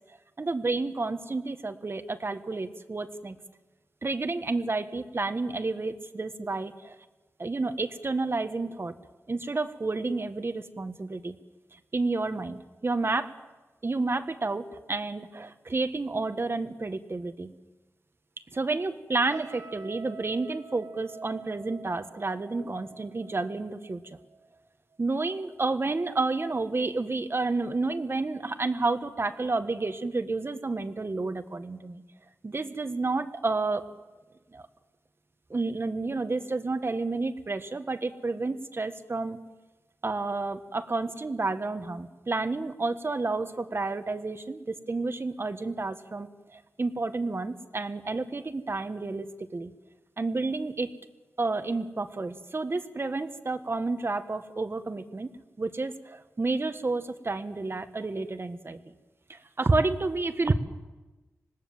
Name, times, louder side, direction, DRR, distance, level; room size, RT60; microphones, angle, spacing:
voice 1, 0.4-3.4 4.0-6.9 7.4-8.9 9.3-11.3 11.9-13.3 13.8-17.5 18.5-24.0 25.0-32.0 32.4-33.8 34.5-34.7 35.5-39.4 40.0-49.7 50.2-50.9 51.4-55.3 55.6-58.8 59.3-60.5, right 3 dB, 45° right, 9 dB, 1.6 m, -30 dB
sound 1, 19.3-24.6 24.9-25.2, right 5 dB, 80° right, 2.1 m, -46 dB
26.0 x 19.0 x 7.5 m, 1.2 s
cardioid pair, 45°, 6 cm